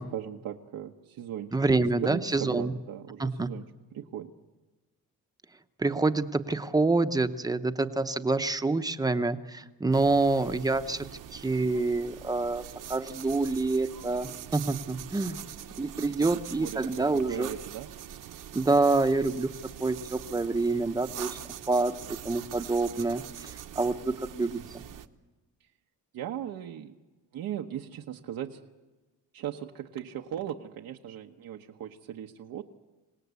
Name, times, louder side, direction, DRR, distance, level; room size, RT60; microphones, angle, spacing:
voice 1, 0.0-1.5 1.9-3.6 3.9-4.3 15.7-17.9 26.1-26.9 27.3-28.6 29.3-32.6, right 10 dB, 90° right, 2 dB, 1.1 m, -38 dB
voice 2, 1.5-2.7 3.2-3.5 5.8-11.1 11.3-12.6 12.9-15.4 15.8-17.5 18.5-19.5 19.8-21.4 21.7-24.8, right 3 dB, 10° right, 9 dB, 0.8 m, -27 dB
sound 1, 9.9-25.1, right 10 dB, 65° right, 1.1 m, -43 dB
26.0 x 18.5 x 8.2 m, 1.1 s
cardioid pair, 155°, 34 cm